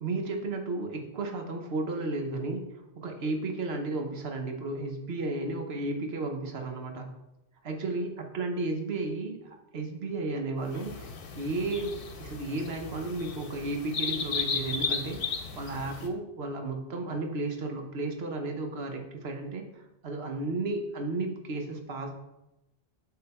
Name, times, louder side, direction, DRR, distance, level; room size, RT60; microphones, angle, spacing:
voice 1, 0.0-7.1 7.6-11.1 11.3-22.1, right 2 dB, 70° right, 4 dB, 1.2 m, -33 dB
sound 1, 10.7-16.1, left 5 dB, 60° left, 0.9 m, -35 dB
7.6 x 3.9 x 4.4 m, 0.93 s
omnidirectional pair, 1.1 m